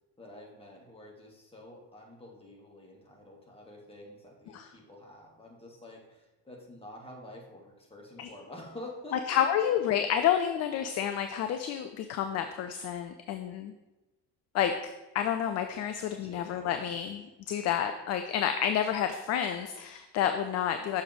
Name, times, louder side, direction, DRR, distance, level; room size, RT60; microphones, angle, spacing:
voice 1, 0.2-9.7 15.9-16.9, left 1 dB, 10° left, -2 dB, 1.9 m, -48 dB
voice 2, 9.3-13.7 14.5-14.7 15.1-21.0, left 9 dB, 35° left, 7 dB, 0.4 m, -29 dB
6.5 x 4.0 x 4.9 m, 1.0 s
figure-of-eight pair, 50°, 50 cm